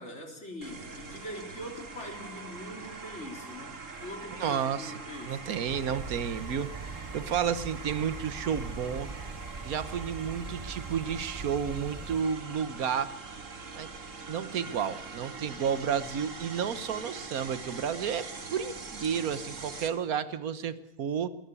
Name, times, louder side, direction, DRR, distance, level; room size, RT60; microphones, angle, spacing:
voice 1, 0.0-5.5, left 1 dB, 50° left, 4 dB, 3.8 m, -43 dB
sound 1, 0.6-19.9, right 4 dB, 60° right, 2.3 m, -43 dB
voice 2, 4.4-4.9 5.3-6.7 7.1-9.1 9.6-13.1 13.7-13.9 14.3-21.3, right 7 dB, 90° right, 14 dB, 1.5 m, -31 dB
sound 2, 5.7-12.2, right 4 dB, 30° right, 0.7 m, -42 dB
21.0 x 18.0 x 8.4 m, 0.81 s
omnidirectional pair, 1.5 m